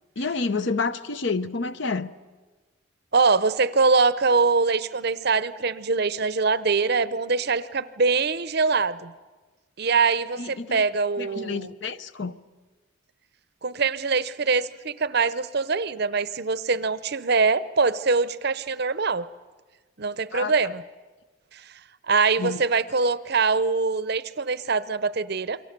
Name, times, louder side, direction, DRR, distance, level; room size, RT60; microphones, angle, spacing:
voice 1, 0.2-2.1 10.4-10.8 11.2-12.4 20.3-20.5 22.4-22.6, left 4 dB, 60° left, 0.8 m, -29 dB
voice 2, 3.1-9.1 9.8-11.7 13.6-19.3 20.0-20.8 21.5-21.6 22.1-25.6, right 4 dB, 50° right, 0.7 m, -23 dB
29.0 x 23.0 x 6.7 m
head